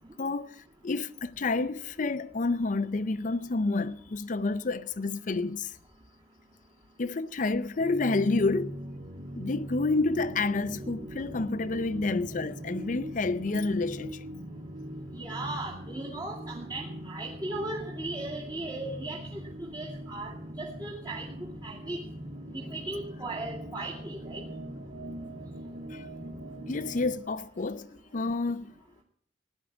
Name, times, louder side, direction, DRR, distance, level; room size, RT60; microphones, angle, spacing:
voice 1, 0.2-0.5 0.8-5.7 7.0-8.8 9.3-14.3 25.9-26.1 26.7-28.7, left 3 dB, 45° left, 0.5 m, -29 dB
sound 1, 7.8-27.1, right 1 dB, 50° right, 2.4 m, -41 dB
voice 2, 15.1-21.3 21.6-22.0 22.5-24.4, right 2 dB, 25° right, 2.3 m, -37 dB
16.0 x 10.5 x 6.0 m
head